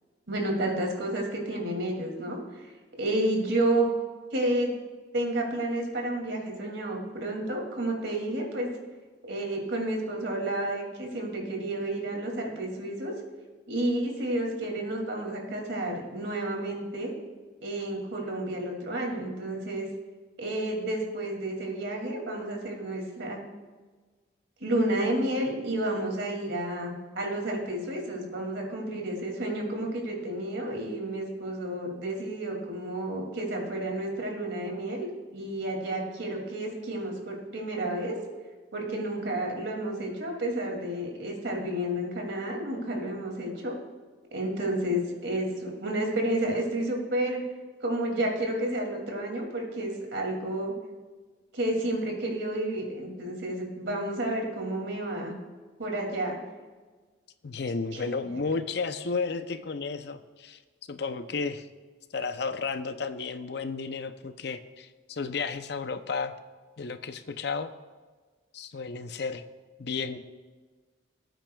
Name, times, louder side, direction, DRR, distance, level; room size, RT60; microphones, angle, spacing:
voice 1, 0.3-2.6 3.0-3.9 4.3-4.7 5.1-8.7 9.2-13.1 13.7-17.1 17.6-19.9 20.4-23.4 24.6-38.2 38.7-43.7 44.3-47.4 47.8-50.7 51.5-55.3 55.8-56.4 57.9-58.1, right 1 dB, 75° right, 1 dB, 2.5 m, -31 dB
voice 2, 57.4-60.6 60.9-61.7 62.1-66.3 66.8-67.7 68.5-69.4 69.8-70.2, left 4 dB, 60° left, 10 dB, 0.6 m, -33 dB
18.5 x 9.0 x 2.3 m, 1.4 s
head